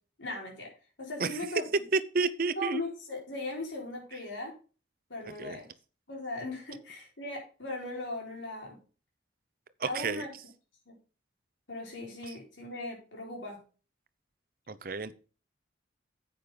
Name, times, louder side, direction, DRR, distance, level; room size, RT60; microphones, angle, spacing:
voice 1, 0.2-0.7 1.0-1.6 2.6-4.5 5.1-5.7 6.1-8.8 9.9-10.3 10.9-11.0 11.7-13.6, left 2 dB, 80° left, -1 dB, 4.7 m, -38 dB
voice 2, 1.9-2.8 5.3-5.6 9.8-10.2 12.3-12.4 14.7-15.1, right 4 dB, 50° right, 14 dB, 0.7 m, -31 dB
10.0 x 8.5 x 3.9 m, 0.36 s
head